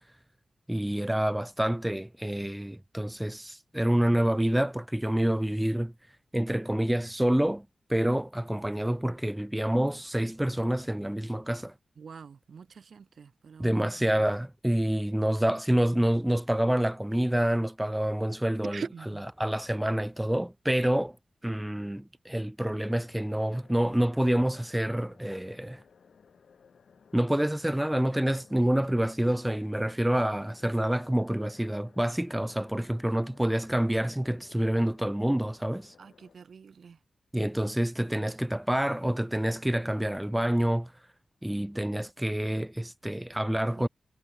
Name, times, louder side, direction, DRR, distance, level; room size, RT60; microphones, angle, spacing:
voice 1, 0.7-5.9 6.3-11.7 13.6-18.8 19.1-21.2 21.4-25.8 27.1-35.9 37.3-40.9 41.4-43.9, right 1 dB, 5° right, 0.3 m, -27 dB
voice 2, 12.0-13.9 18.6-19.2 36.0-37.0 43.8-43.9, right 6 dB, 70° right, 1.2 m, -43 dB
sound 1, 22.7-36.4, left 6 dB, 70° left, 6.4 m, -59 dB
wide cardioid pair, 150°, 0 cm